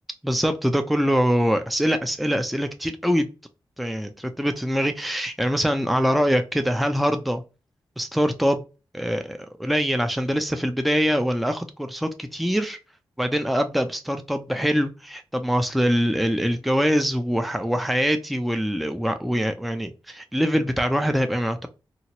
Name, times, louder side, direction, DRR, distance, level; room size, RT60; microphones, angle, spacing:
voice 1, 0.2-3.3 3.8-7.4 8.0-8.6 8.9-12.8 13.2-21.7, equal, ahead, 7 dB, 0.5 m, -23 dB
2.9 x 2.8 x 2.8 m, 0.30 s
cardioid pair, 45°, 9 cm